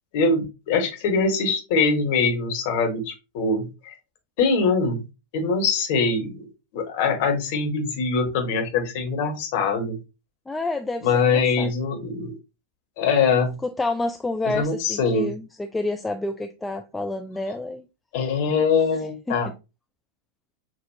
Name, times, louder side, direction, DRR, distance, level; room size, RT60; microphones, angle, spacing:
voice 1, 0.1-3.9 4.4-5.0 5.3-6.5 6.7-10.0 11.0-12.3 13.0-13.6 14.5-15.3 18.1-19.5, left 4 dB, 50° left, 1.3 m, -23 dB
voice 2, 10.5-11.7 13.6-17.8 19.3-19.4, left 2 dB, 10° left, 0.4 m, -29 dB
6.3 x 2.4 x 2.7 m
figure-of-eight pair, 90°, 0 cm